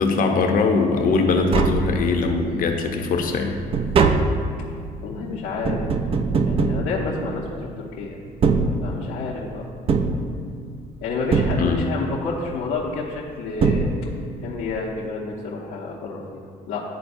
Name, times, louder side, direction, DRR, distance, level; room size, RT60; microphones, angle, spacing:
voice 1, 0.0-3.6 11.6-11.8, left 4 dB, 55° left, 3 dB, 0.8 m, -21 dB
Tap, 1.1-1.2 1.4-2.5 2.9-7.7 8.3-9.3 9.9-10.8 11.3-12.1 13.2-13.3 13.6-14.4 14.7-14.8, right 4 dB, 35° right, 0.4 m, -23 dB
voice 2, 5.0-5.9 6.5-8.2 8.8-9.7 11.0-13.9 14.4-16.4 16.7-16.8, left 4 dB, 85° left, -6 dB, 0.9 m, -29 dB
11.5 x 3.9 x 2.6 m, 2.3 s
cardioid pair, 110°, 17 cm